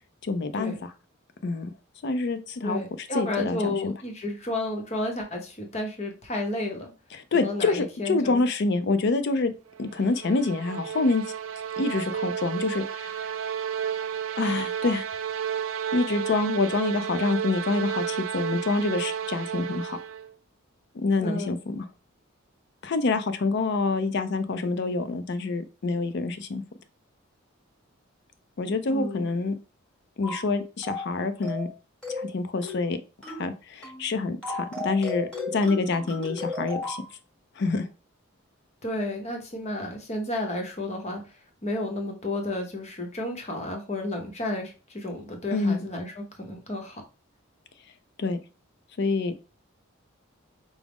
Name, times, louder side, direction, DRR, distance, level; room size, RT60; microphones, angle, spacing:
voice 1, 0.2-0.9 1.4-1.7 2.0-3.9 7.1-9.5 9.8-11.2 11.8-13.2 14.4-15.1 15.9-20.0 20.9-21.9 22.8-26.6 28.6-29.6 30.2-31.7 32.1-33.0 33.3-37.0 37.6-37.9 45.5-45.9 48.2-48.4 49.0-49.3, left 3 dB, 50° left, 11 dB, 0.4 m, -27 dB
voice 2, 2.6-6.9 7.3-8.4 21.2-21.6 28.9-29.2 38.8-41.2 41.6-47.0, left 1 dB, 30° left, 3 dB, 0.7 m, -32 dB
sound 1, 9.8-20.3, right 8 dB, 70° right, 0.3 m, -32 dB
sound 2, 30.2-30.5 30.8-31.1 31.4-31.7 32.0-32.3 32.6-32.9 33.2-33.5 33.8-34.1 34.4-37.1, left 2 dB, 5° left, 1.0 m, -34 dB
4.9 x 2.0 x 3.5 m, 0.33 s
head